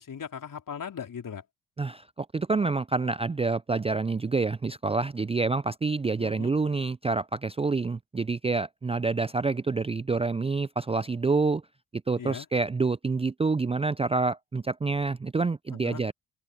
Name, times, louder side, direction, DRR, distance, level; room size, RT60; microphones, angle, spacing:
voice 1, 0.0-1.4 6.2-6.5 12.2-12.5 15.7-16.0, left 7 dB, 50° left, 4.5 m, -38 dB
voice 2, 1.8-11.6 12.1-16.1, right 4 dB, 15° right, 0.5 m, -27 dB
open air
hypercardioid pair, 45°, 41 cm